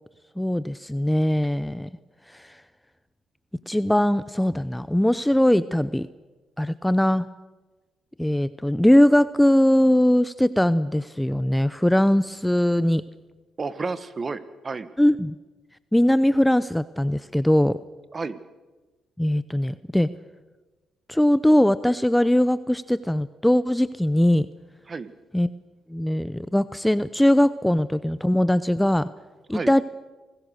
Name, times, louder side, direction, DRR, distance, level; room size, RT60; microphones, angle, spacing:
voice 1, 0.4-1.9 2.3-2.6 3.7-6.1 6.6-7.3 8.2-13.0 15.0-15.4 15.9-17.8 19.2-20.1 21.1-24.5 25.3-25.5 25.9-29.1 29.5-29.8, left 1 dB, 5° left, 15 dB, 0.7 m, -20 dB
voice 2, 13.6-14.9 18.1-18.4 24.9-25.1 29.5-29.7, right 4 dB, 35° right, 13 dB, 1.4 m, -31 dB
27.5 x 19.5 x 6.7 m, 1.2 s
cardioid pair, 90°, 0 cm